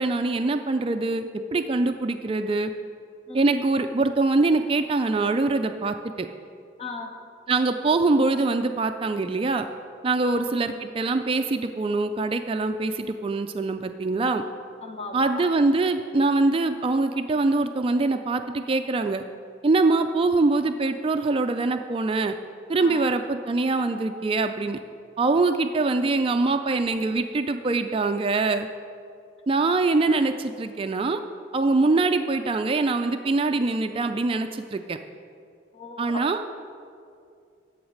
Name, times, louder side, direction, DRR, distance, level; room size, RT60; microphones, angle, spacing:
voice 1, 0.0-2.7 3.3-6.3 7.5-9.7 10.0-14.4 15.1-19.2 19.6-22.3 22.7-24.8 25.2-28.7 29.5-31.2 31.5-35.0 36.0-36.4, right 3 dB, 30° right, 7 dB, 0.3 m, -23 dB
voice 2, 6.8-7.1 10.2-10.4 14.8-15.5 22.8-23.1 35.7-36.3, left 3 dB, 30° left, 4 dB, 1.0 m, -37 dB
11.0 x 8.0 x 6.4 m, 2.4 s
head